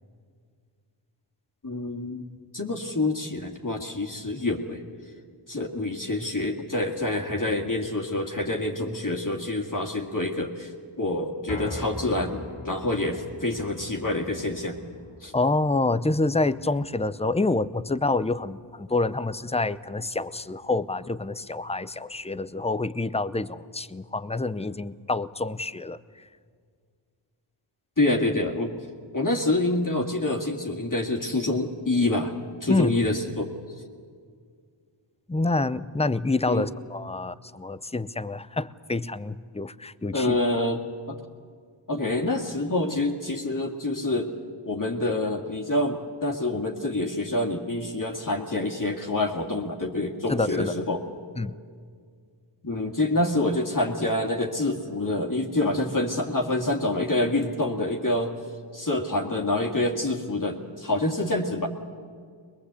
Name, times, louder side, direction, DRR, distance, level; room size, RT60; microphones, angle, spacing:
voice 1, 1.6-4.8 5.5-10.7 11.0-14.8 15.2-15.3 28.0-28.7 29.1-32.3 32.6-33.5 36.5-36.7 40.1-40.8 41.1-41.2 41.9-44.3 44.7-51.0 52.6-58.3 58.7-61.7, left 2 dB, 40° left, -1 dB, 2.2 m, -27 dB
sound 1, 11.5-23.7 24.1-24.2 24.7-24.8, left 2 dB, 85° left, 2.7 m, -44 dB
voice 2, 15.3-26.0 32.7-32.9 35.3-40.4 50.3-50.7 51.4-51.5, left 2 dB, 15° left, 15 dB, 0.6 m, -27 dB
22.0 x 21.5 x 8.2 m, 2.1 s
wide cardioid pair, 45°, 48 cm